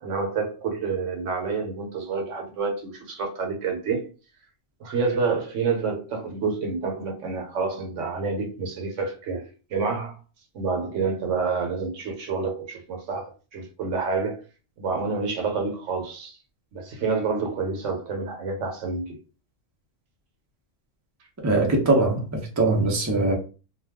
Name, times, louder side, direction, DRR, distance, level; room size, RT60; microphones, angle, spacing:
voice 1, 0.0-4.1 4.8-9.4 9.7-10.2 10.5-14.4 14.8-16.4 16.7-19.2, right 4 dB, 75° right, 1.1 m, -28 dB
voice 2, 21.4-23.3, right 2 dB, 20° right, 0.5 m, -21 dB
2.4 x 2.3 x 3.4 m
omnidirectional pair, 1.3 m